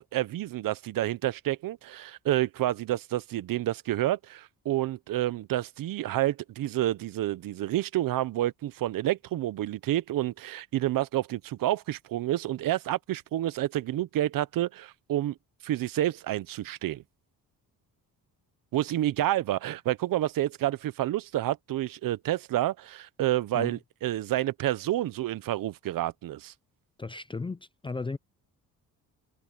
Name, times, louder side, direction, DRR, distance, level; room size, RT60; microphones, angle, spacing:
voice 1, 0.0-15.3 15.6-17.0 18.7-26.5, right 14 dB, 65° right, 0.7 m, -29 dB
voice 2, 27.0-28.2, left 3 dB, 15° left, 0.4 m, -35 dB
cardioid pair, 160°, 36 cm